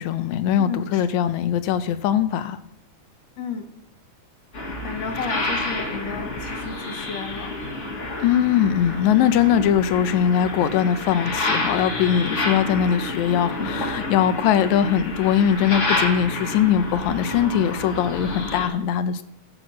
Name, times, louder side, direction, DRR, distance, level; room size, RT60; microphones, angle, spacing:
voice 1, 0.0-2.6 8.2-19.2, left 9 dB, 75° left, 2.0 m, -21 dB
voice 2, 0.6-1.1 3.4-3.7 4.8-7.6, left 5 dB, 60° left, 2.5 m, -32 dB
sound 1, 4.5-18.7, left 2 dB, 30° left, 1.4 m, -29 dB
14.0 x 6.3 x 6.2 m
omnidirectional pair, 3.5 m